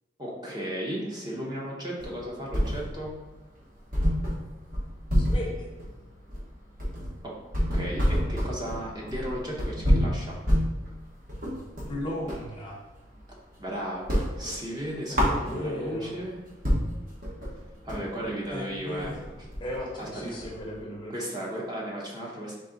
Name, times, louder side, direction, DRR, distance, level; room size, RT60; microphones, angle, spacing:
voice 1, 0.2-3.1 7.2-7.4 7.7-10.4 13.6-16.3 17.8-19.1 19.9-20.4 21.1-22.6, equal, 25° right, -3 dB, 0.8 m, -35 dB
sound 1, 2.0-3.2 3.5-3.6 3.9-12.5 12.9-13.6 13.9-15.9 16.3-16.4 16.6-20.8, equal, 50° right, 1.0 m, -28 dB
voice 2, 5.1-5.7 11.9-12.8 15.1-16.1 18.5-21.1, left 1 dB, 25° left, -1 dB, 0.7 m, -36 dB
4.1 x 3.2 x 3.8 m, 1.1 s
head